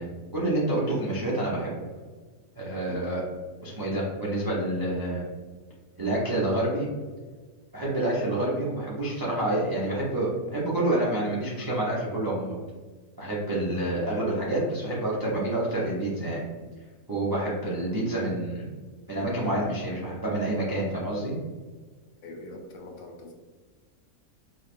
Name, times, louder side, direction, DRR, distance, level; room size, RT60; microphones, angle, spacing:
voice 1, 0.0-1.8 2.6-3.2 3.6-5.2 6.0-6.9 7.7-12.5 13.2-16.4 17.1-18.7 19.1-21.3, right 1 dB, 35° right, -6 dB, 0.3 m, -28 dB
voice 2, 22.2-23.3, left 2 dB, 75° left, 2 dB, 1.0 m, -42 dB
3.9 x 2.9 x 2.5 m, 1.4 s
omnidirectional pair, 1.6 m